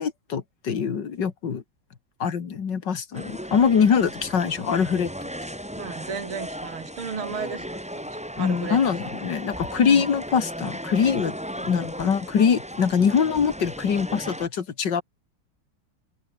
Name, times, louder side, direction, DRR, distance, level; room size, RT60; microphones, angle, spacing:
voice 1, 0.0-1.6 2.2-5.1 8.4-11.3 11.7-15.0, left 7 dB, 55° left, 2.5 m, -23 dB
sound 1, 3.1-14.5, equal, 5° right, 4.1 m, -36 dB
voice 2, 5.8-9.1 9.9-10.1, right 6 dB, 80° right, 3.6 m, -35 dB
open air
omnidirectional pair, 2.3 m